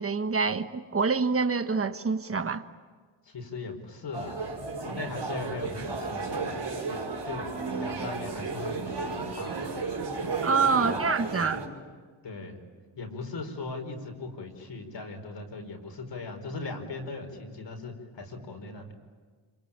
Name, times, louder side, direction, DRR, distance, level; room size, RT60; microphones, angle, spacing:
voice 1, 0.0-2.6 10.4-11.6, right 4 dB, 25° right, 1.3 m, -26 dB
voice 2, 3.2-7.5 7.8-9.9 10.8-11.0 11.3-11.6 12.2-12.6 13.0-18.9, left 3 dB, 55° left, 4.8 m, -39 dB
sound 1, 4.1-11.7, right 4 dB, 55° right, 5.2 m, -33 dB
26.5 x 24.0 x 8.9 m
cardioid pair, 75°, 49 cm